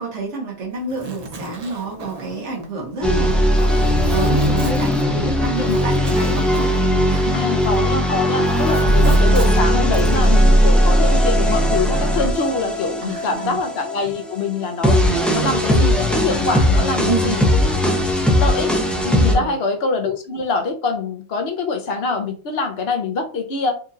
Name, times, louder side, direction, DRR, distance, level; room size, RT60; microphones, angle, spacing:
voice 1, 0.0-3.4 3.8-6.8 7.0-7.5 13.0-13.6 17.0-17.4 19.3-19.6, right 3 dB, 80° right, -1 dB, 1.6 m, -28 dB
Zipper (clothing), 0.8-7.9 8.2-10.3, right 3 dB, 40° right, 0.7 m, -34 dB
sound 1, 3.0-19.4, equal, ahead, 0.4 m, -18 dB
voice 2, 7.3-15.0 15.3-18.0 18.3-18.7 19.0-23.8, left 4 dB, 65° left, 4 dB, 1.0 m, -24 dB
4.4 x 2.8 x 2.4 m, 0.38 s
omnidirectional pair, 1.2 m